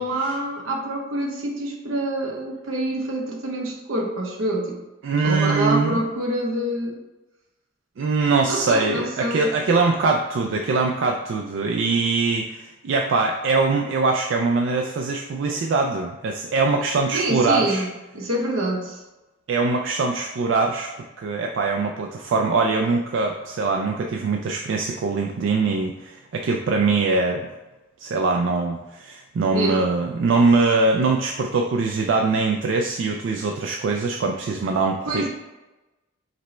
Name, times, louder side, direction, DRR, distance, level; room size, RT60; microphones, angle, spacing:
voice 1, 0.0-4.8 5.2-7.0 8.5-9.5 17.1-17.9 18.1-19.0 29.5-29.9 35.1-35.3, right 1 dB, 80° right, 0 dB, 0.8 m, -26 dB
voice 2, 5.0-6.0 8.0-17.8 19.5-20.9 21.2-27.5 28.0-35.3, right 3 dB, 65° right, 1 dB, 0.3 m, -22 dB
5.0 x 2.1 x 4.2 m, 1.1 s
head